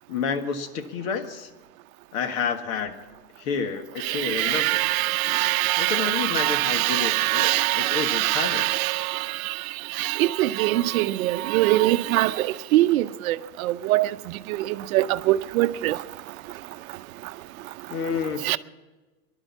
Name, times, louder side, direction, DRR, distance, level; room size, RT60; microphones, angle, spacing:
voice 1, 0.1-1.5 2.1-3.0 3.4-4.8 5.8-8.7 17.9-18.6, left 6 dB, 60° left, 1.7 m, -29 dB
voice 2, 4.4-8.9 10.0-12.3 12.7-13.3 13.9-14.1 14.9-15.9 18.5-18.6, right 17 dB, 65° right, 0.7 m, -22 dB
18.0 x 12.0 x 5.8 m
hypercardioid pair, 120°, 45 cm